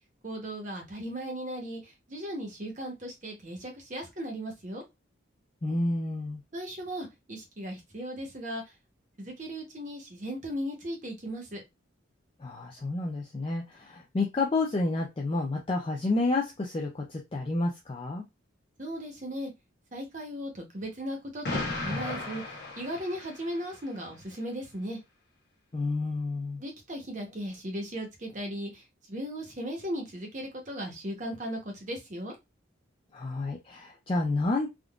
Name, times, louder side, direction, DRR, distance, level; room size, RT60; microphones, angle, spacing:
voice 1, 0.2-4.8 6.5-8.6 9.2-11.6 18.8-19.5 19.9-22.4 22.8-25.0 26.6-32.3, equal, 40° right, 2 dB, 0.9 m, -37 dB
voice 2, 5.6-6.4 12.4-18.3 25.7-26.6 33.1-34.7, left 2 dB, 25° left, 0 dB, 0.4 m, -30 dB
Explosion, 21.4-23.6, left 2 dB, 55° left, 1.0 m, -35 dB
3.6 x 2.3 x 2.4 m, 0.21 s
head